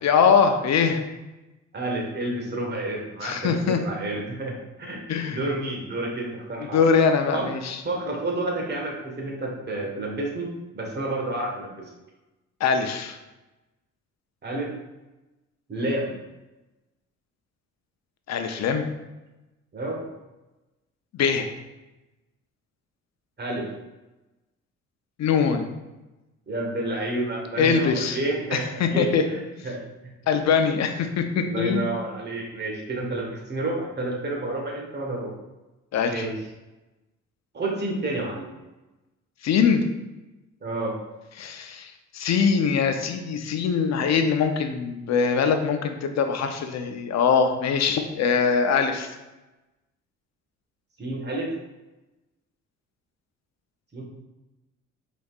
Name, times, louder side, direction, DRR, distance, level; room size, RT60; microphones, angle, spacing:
voice 1, 0.0-1.0 3.2-3.8 5.1-5.4 6.7-7.8 12.6-13.2 18.3-18.9 21.1-21.5 25.2-25.7 27.6-28.2 28.5-29.2 30.3-31.9 35.9-36.3 39.4-39.8 41.4-49.2, left 6 dB, 60° left, 6 dB, 0.7 m, -22 dB
voice 2, 1.7-6.8 7.3-7.5 7.8-10.5 10.7-11.9 14.4-14.7 15.7-16.2 19.7-20.1 23.4-23.7 26.5-29.8 31.4-35.3 36.0-36.4 37.5-38.5 40.6-41.0 51.0-51.5 53.9-54.0, right 2 dB, 35° right, -1 dB, 1.4 m, -30 dB
5.1 x 4.1 x 2.4 m, 1.0 s
cardioid pair, 90°, 30 cm